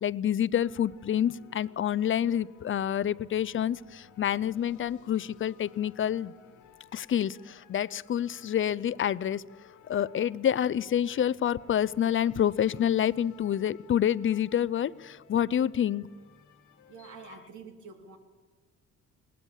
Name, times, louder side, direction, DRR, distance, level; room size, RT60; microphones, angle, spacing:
voice 1, 0.0-6.3 6.9-9.4 9.9-16.1, left 10 dB, 40° left, 19 dB, 0.5 m, -28 dB
sound 1, 0.5-17.4, left 8 dB, 85° left, 1.8 m, -56 dB
voice 2, 16.9-18.2, right 5 dB, 75° right, 4 dB, 2.8 m, -47 dB
20.5 x 18.5 x 7.2 m, 1.4 s
cardioid pair, 90°, 30 cm